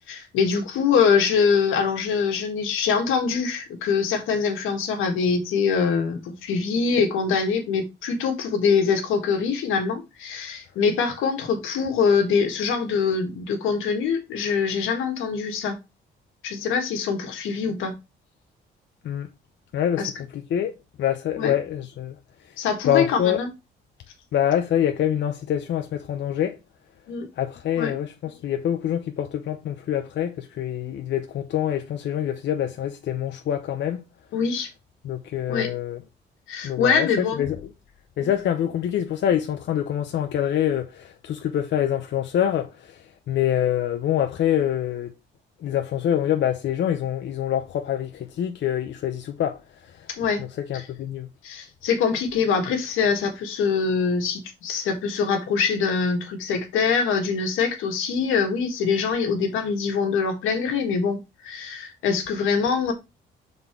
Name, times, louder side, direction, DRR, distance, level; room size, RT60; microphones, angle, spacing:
voice 1, 0.0-15.8 16.4-17.9 20.0-20.1 21.3-21.5 22.6-23.5 27.1-27.3 27.8-28.0 34.3-34.7 35.5-35.7 36.5-37.4 38.2-38.3 50.1-50.4 50.7-50.9 51.4-62.9, left 5 dB, 90° left, 1.6 m, -24 dB
voice 2, 19.7-20.1 20.3-20.7 21.0-22.2 22.9-23.4 24.3-26.6 27.4-34.0 35.0-36.0 36.6-37.6 38.2-43.0 43.3-45.1 45.6-49.6 50.4-51.3, left 10 dB, 65° left, 0.7 m, -25 dB
5.5 x 4.1 x 4.4 m
cardioid pair, 90°, 20 cm